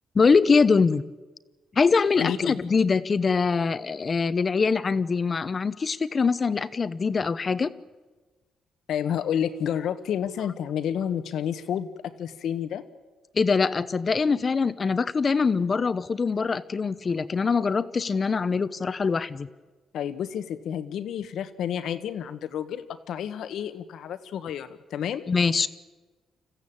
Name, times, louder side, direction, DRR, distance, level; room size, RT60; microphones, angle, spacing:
voice 1, 0.1-1.0 1.7-7.7 13.3-19.5 25.3-25.7, left 5 dB, 35° left, 14 dB, 1.0 m, -23 dB
voice 2, 2.2-2.6 8.9-12.8 19.9-25.3, left 9 dB, 75° left, 11 dB, 1.4 m, -30 dB
27.0 x 15.0 x 8.8 m, 1.3 s
cardioid pair, 90°, 0 cm